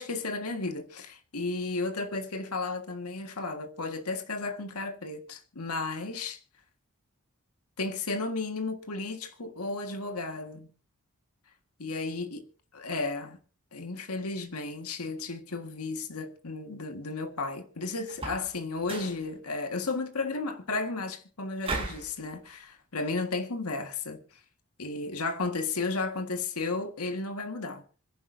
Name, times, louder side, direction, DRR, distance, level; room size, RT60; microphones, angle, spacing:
voice 1, 0.0-6.4 7.8-10.7 11.8-12.4 12.7-13.4 13.7-24.2 24.8-27.8, left 3 dB, 90° left, 1.7 m, -33 dB
sound 1, 18.1-18.5 18.8-19.2 21.6-22.1, right 3 dB, 25° right, 5.7 m, -35 dB
26.0 x 11.0 x 2.7 m
head